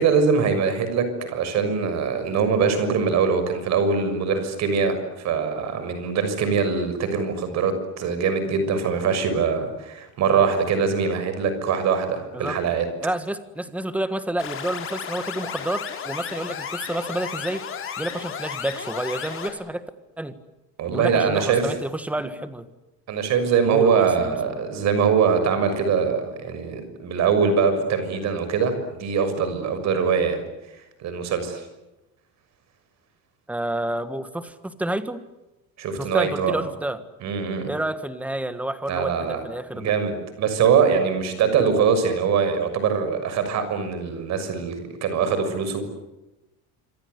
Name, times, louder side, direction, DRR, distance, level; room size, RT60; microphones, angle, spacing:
voice 1, 0.0-12.9 20.8-21.7 23.1-30.4 31.0-31.6 35.8-36.6 37.2-37.7 38.9-39.4 39.7-45.8, right 6 dB, 50° right, 9 dB, 6.5 m, -22 dB
voice 2, 12.3-12.7 13.0-17.6 18.0-19.8 20.2-20.3 20.9-22.7 23.7-24.6 33.5-35.2 36.0-37.0 37.7-39.9, right 1 dB, 5° right, 11 dB, 1.6 m, -29 dB
sound 1, 14.4-19.5, left 8 dB, 35° left, 5.1 m, -33 dB
27.0 x 26.0 x 8.2 m, 0.99 s
cardioid pair, 165°, 36 cm